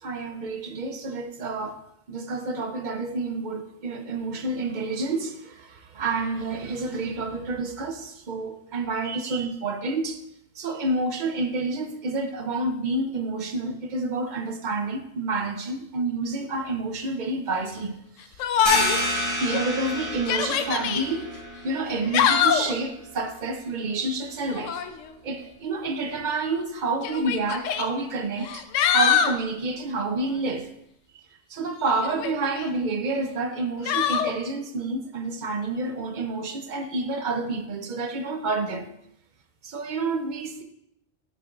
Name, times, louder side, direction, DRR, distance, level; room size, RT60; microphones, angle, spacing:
voice 1, 0.0-1.8 2.1-10.2 10.6-18.0 19.4-21.2 21.6-24.8 25.2-28.7 28.9-30.7 31.5-38.9 39.6-40.6, right 3 dB, 50° right, 0.6 m, -29 dB
Yell, 18.4-19.1 19.5-19.6 20.1-21.0 21.9-22.7 24.5-24.9 26.1-26.2 27.0-27.9 28.4-29.4 32.0-32.7 33.9-34.3, left 8 dB, 85° left, 0.9 m, -23 dB
sound 1, 18.7-24.0, equal, 30° right, 1.7 m, -31 dB
9.1 x 6.1 x 2.4 m
omnidirectional pair, 1.3 m